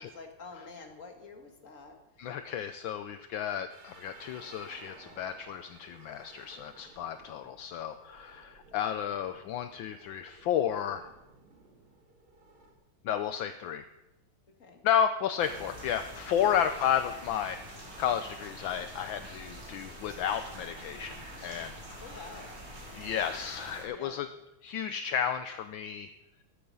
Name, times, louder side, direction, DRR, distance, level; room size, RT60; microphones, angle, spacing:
voice 1, 0.0-2.3 14.6-14.8 16.4-16.6 22.0-22.5 23.9-24.2, left 4 dB, 40° left, 4 dB, 2.2 m, -48 dB
voice 2, 2.2-11.1 13.0-13.8 14.8-22.0 22.9-24.3 24.6-26.1, left 9 dB, 70° left, 9 dB, 1.4 m, -32 dB
sound 1, 3.7-12.7, right 3 dB, 80° right, 3.0 m, -56 dB
sound 2, 15.4-23.8, right 1 dB, 45° right, 5.2 m, -45 dB
15.0 x 13.5 x 5.4 m, 0.96 s
omnidirectional pair, 2.3 m